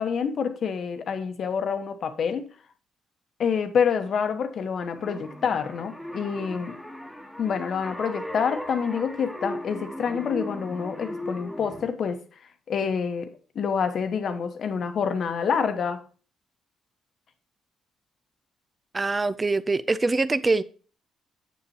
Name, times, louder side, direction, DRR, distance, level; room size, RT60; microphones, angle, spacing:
voice 1, 0.0-2.5 3.4-6.8 7.4-12.2 12.7-16.0, left 6 dB, 60° left, 1.1 m, -27 dB
sound 1, 4.9-11.9, equal, 5° left, 1.4 m, -37 dB
voice 2, 18.9-20.6, right 3 dB, 25° right, 0.5 m, -24 dB
8.4 x 7.1 x 2.9 m
cardioid pair, 90°, 0 cm